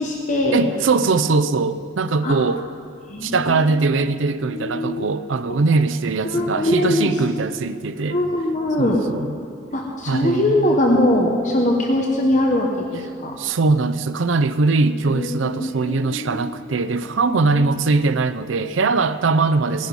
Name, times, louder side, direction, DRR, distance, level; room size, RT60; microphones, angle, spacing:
voice 1, 0.0-0.6 2.2-2.4 3.1-3.7 4.5-5.0 6.2-7.1 8.1-9.0 9.7-13.3 15.1-16.6 17.5-17.7, left 1 dB, 40° left, 1.1 m, -21 dB
voice 2, 0.5-2.6 3.2-8.2 8.8-9.4 10.1-10.8 13.4-19.9, right 3 dB, 85° right, 0.6 m, -21 dB
17.5 x 10.5 x 5.4 m
head